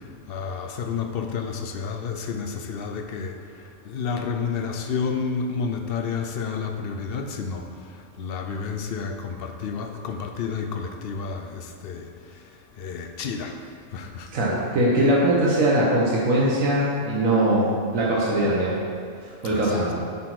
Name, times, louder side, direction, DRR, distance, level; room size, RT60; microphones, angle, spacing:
voice 1, 0.3-7.7 8.2-12.1 12.8-13.6 13.9-14.3 19.4-19.9, left 5 dB, 60° left, 5 dB, 0.6 m, -30 dB
voice 2, 14.3-18.8 19.4-19.9, right 1 dB, 85° right, -5 dB, 1.4 m, -21 dB
7.6 x 4.2 x 4.5 m, 2.2 s
omnidirectional pair, 1.4 m